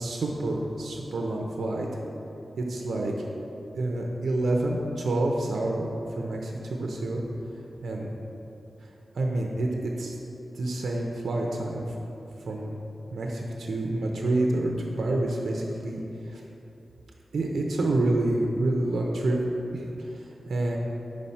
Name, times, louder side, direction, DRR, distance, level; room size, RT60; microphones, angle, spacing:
voice 1, 0.0-1.9 2.6-3.3 3.7-7.2 7.8-8.1 9.1-10.2 10.5-11.8 12.5-12.7 13.1-16.4 17.3-19.4 19.7-20.8, right 2 dB, 85° right, 0 dB, 0.5 m, -28 dB
4.9 x 4.1 x 5.5 m, 3.0 s
wide cardioid pair, 80°, 0 cm